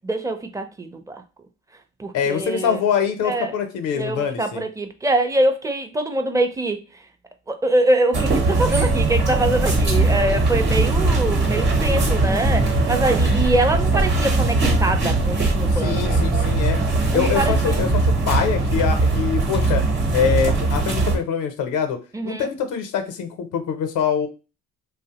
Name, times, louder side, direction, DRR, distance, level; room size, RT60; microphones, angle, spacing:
voice 1, 0.0-1.2 2.0-2.8 3.2-3.5 3.9-6.8 7.5-16.1 17.1-17.9 22.1-22.5, right 2 dB, 10° right, 6 dB, 0.5 m, -24 dB
voice 2, 2.1-4.6 15.7-16.8 17.1-19.8 20.1-22.0 22.2-24.3, left 7 dB, 90° left, 6 dB, 0.6 m, -24 dB
sound 1, 8.1-21.2, right 2 dB, 35° right, 0.9 m, -20 dB
3.2 x 2.0 x 2.8 m, 0.31 s
cardioid pair, 90°, 30 cm